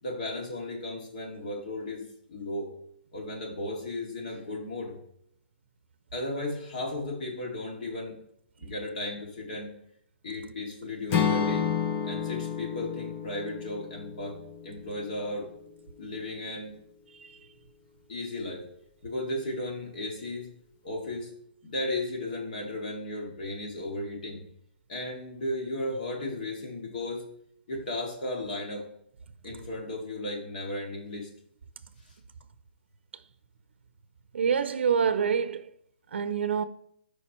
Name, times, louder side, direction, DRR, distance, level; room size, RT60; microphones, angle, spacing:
voice 1, 0.0-2.7 3.1-5.0 6.1-8.2 8.6-9.7 10.2-11.7 12.0-15.5 16.0-16.7 18.1-18.7 19.0-20.5 20.8-21.3 21.6-24.4 24.9-27.3 27.7-28.9 29.4-31.3 32.0-32.1, left 1 dB, 45° left, 2.2 m, -35 dB
Acoustic guitar / Strum, 11.1-15.2, left 7 dB, 15° left, 0.5 m, -30 dB
voice 2, 34.3-35.7 36.1-36.6, right 7 dB, 75° right, 0.6 m, -26 dB
13.0 x 4.9 x 3.0 m
hypercardioid pair, 175°, 6 cm